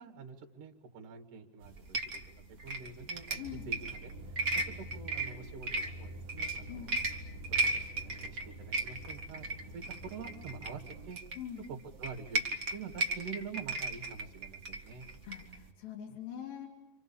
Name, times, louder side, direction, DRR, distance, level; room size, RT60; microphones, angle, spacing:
voice 1, 0.0-2.2 2.6-7.0 7.5-9.4 9.7-11.2 11.7-12.4 12.7-15.1, right 5 dB, 65° right, 5 dB, 3.5 m, -46 dB
sound 1, 1.6-15.7, right 2 dB, 35° right, 1.4 m, -37 dB
voice 2, 3.4-3.7 6.7-7.0 11.4-11.6 15.2-16.7, left 9 dB, 80° left, 0 dB, 4.9 m, -43 dB
sound 2, 3.4-11.1, right 1 dB, 80° right, 3.3 m, -48 dB
29.5 x 26.0 x 7.1 m, 0.91 s
omnidirectional pair, 4.1 m